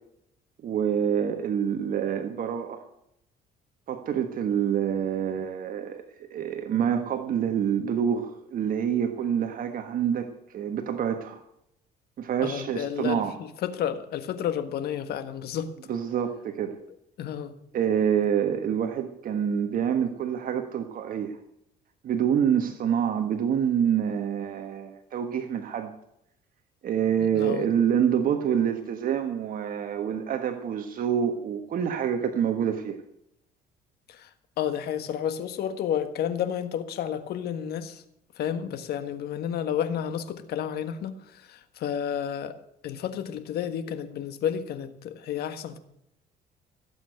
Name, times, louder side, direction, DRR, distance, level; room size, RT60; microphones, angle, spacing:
voice 1, 0.6-2.8 3.9-11.4 12.2-13.4 15.9-16.7 17.7-21.4 22.0-25.9 26.8-33.0, right 8 dB, 55° right, 6 dB, 1.5 m, -27 dB
voice 2, 12.4-13.2 13.6-15.7 17.2-17.5 27.4-27.6 34.2-34.3 34.6-38.0 38.4-41.2 41.5-42.6 42.8-45.8, left 9 dB, 70° left, 11 dB, 1.6 m, -31 dB
16.5 x 8.4 x 7.9 m, 0.77 s
cardioid pair, 110°, 17 cm